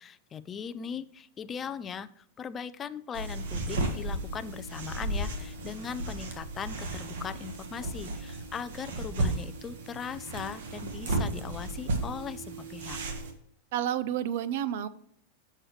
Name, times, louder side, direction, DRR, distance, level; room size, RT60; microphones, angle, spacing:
voice 1, 0.0-2.1 2.4-13.0, left 7 dB, 20° left, 12 dB, 0.3 m, -39 dB
sound 1, 3.1-13.3, right 2 dB, 75° right, 1.4 m, -34 dB
voice 2, 13.7-14.9, right 10 dB, 60° right, 16 dB, 0.5 m, -30 dB
6.5 x 6.1 x 3.2 m, 0.70 s
supercardioid pair, 150°, 0 cm